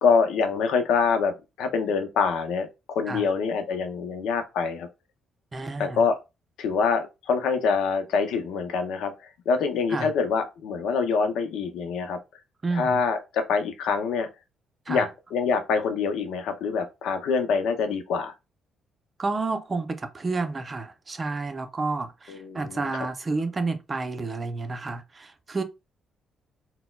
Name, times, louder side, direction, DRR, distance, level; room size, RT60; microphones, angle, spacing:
voice 1, 0.0-4.9 5.8-6.2 6.6-12.2 12.7-14.3 14.9-18.3 22.3-22.9, left 5 dB, 85° left, 0.6 m, -25 dB
voice 2, 5.5-6.0 9.9-10.1 12.6-13.0 14.9-15.1 19.2-25.6, right 3 dB, 30° right, 0.5 m, -30 dB
4.1 x 2.1 x 2.3 m
cardioid pair, 90°, 0 cm